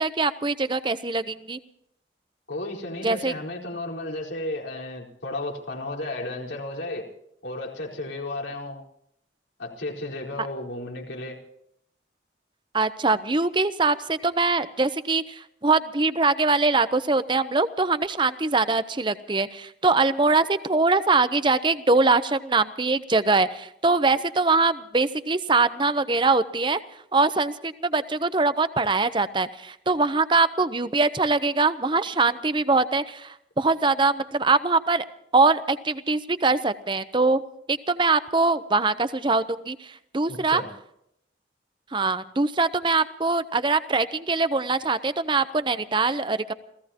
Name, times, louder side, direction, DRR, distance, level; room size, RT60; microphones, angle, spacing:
voice 1, 0.0-1.6 3.0-3.3 12.7-26.8 27.1-35.0 35.3-37.4 37.7-40.6 41.9-46.5, right 3 dB, 25° right, 13 dB, 0.7 m, -23 dB
voice 2, 2.5-7.1 7.4-8.8 9.6-11.4 40.3-40.7, left 2 dB, 85° left, -3 dB, 4.5 m, -33 dB
29.0 x 17.0 x 2.9 m, 0.74 s
head